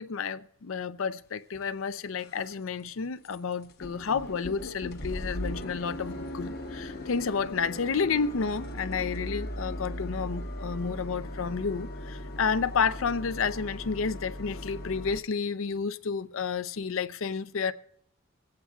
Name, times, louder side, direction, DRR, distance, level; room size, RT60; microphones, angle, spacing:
voice 1, 0.0-17.7, left 5 dB, 70° left, 0.5 m, -31 dB
sound 1, 1.5-1.6 2.1-2.5 2.8-2.9 3.2-3.4 3.6-15.2, left 1 dB, 50° left, 1.0 m, -38 dB
24.5 x 8.7 x 2.4 m
head